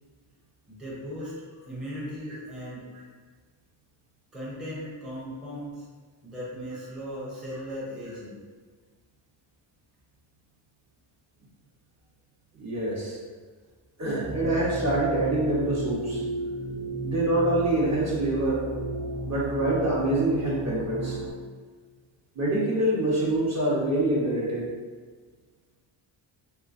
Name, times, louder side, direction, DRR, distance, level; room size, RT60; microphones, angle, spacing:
voice 1, 0.7-2.9 4.3-5.9 6.2-8.4, equal, ahead, -8 dB, 0.6 m, -37 dB
voice 2, 12.6-13.2 14.0-16.2 17.0-18.6 19.3-21.2 22.3-24.7, right 1 dB, 35° right, -6 dB, 0.9 m, -25 dB
sound 1, 14.2-21.3, right 2 dB, 65° right, 0.9 m, -33 dB
3.2 x 3.0 x 2.5 m, 1.5 s
cardioid pair, 140°, 47 cm